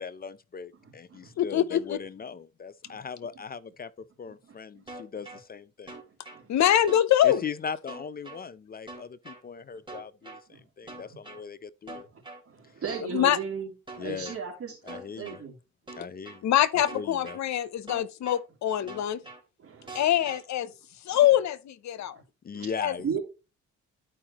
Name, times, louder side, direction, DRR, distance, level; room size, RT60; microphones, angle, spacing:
voice 1, 0.0-5.9 7.2-12.1 14.0-14.4 14.8-15.4 16.0-16.4 16.9-17.4 22.4-23.2, left 6 dB, 30° left, 0.5 m, -39 dB
voice 2, 1.4-2.0 6.5-7.4 13.1-13.4 16.4-19.2 19.9-20.7 21.1-22.2 22.8-22.9, left 11 dB, 65° left, 0.8 m, -24 dB
sound 1, 4.9-5.4 5.9-6.4 6.9-7.4 7.9-8.4 8.9-9.4 9.9-10.4 10.9-11.4 11.9-12.4 12.9-13.4 13.9-14.4 14.9-15.4 15.9-16.4 16.9-17.4 17.9-18.4 18.9-19.4 19.9-20.4, right 2 dB, 15° right, 3.2 m, -43 dB
voice 3, 12.4-13.7 14.0-15.5 18.8-19.0 19.6-20.0 22.5-22.7 23.0-23.2, right 6 dB, 50° right, 2.7 m, -35 dB
12.0 x 4.9 x 2.9 m
cardioid pair, 90°, 30 cm